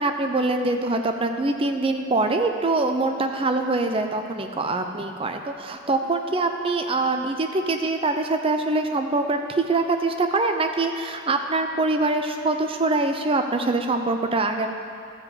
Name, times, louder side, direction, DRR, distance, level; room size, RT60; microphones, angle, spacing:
voice 1, 0.0-14.7, right 2 dB, 25° right, 5 dB, 0.5 m, -24 dB
12.5 x 4.9 x 7.6 m, 2.4 s
head